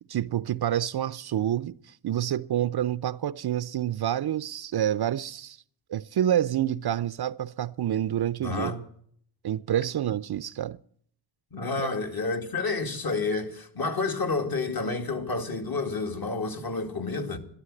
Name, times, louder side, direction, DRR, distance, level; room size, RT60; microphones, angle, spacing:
voice 1, 0.1-1.8 2.0-5.6 5.9-8.7 9.4-10.8 11.8-11.9, right 11 dB, 55° right, 0.5 m, -28 dB
voice 2, 8.4-8.8 11.5-17.4, left 3 dB, 45° left, 2.3 m, -30 dB
13.0 x 12.5 x 7.7 m
wide cardioid pair, 115°, 48 cm